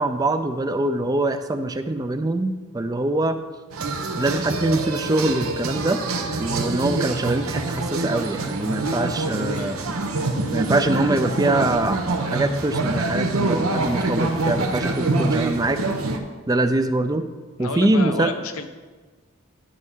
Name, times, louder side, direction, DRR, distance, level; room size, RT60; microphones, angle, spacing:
voice 1, 0.0-3.4 4.2-6.0 6.4-9.9 10.5-12.0 12.3-15.8 16.5-17.2 17.6-18.3, right 2 dB, 20° right, 9 dB, 0.4 m, -23 dB
sound 1, 3.7-16.2, right 2 dB, 90° right, 0.9 m, -25 dB
voice 2, 17.6-18.7, left 4 dB, 85° left, 7 dB, 0.8 m, -31 dB
11.0 x 8.1 x 3.6 m, 1.4 s
head